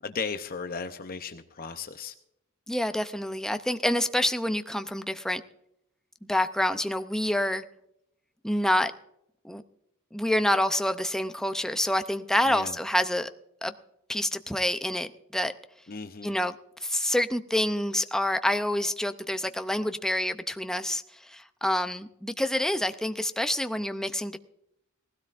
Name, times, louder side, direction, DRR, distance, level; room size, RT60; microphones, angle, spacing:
voice 1, 0.0-2.1 12.5-12.8 15.9-16.3, left 5 dB, 45° left, 8 dB, 0.7 m, -36 dB
voice 2, 2.7-5.4 6.3-7.6 8.4-8.9 9.4-9.6 10.1-13.3 13.6-13.7 14.1-15.5 16.2-16.5 16.8-24.4, left 1 dB, 5° left, 9 dB, 0.5 m, -27 dB
18.5 x 16.0 x 2.5 m, 0.78 s
head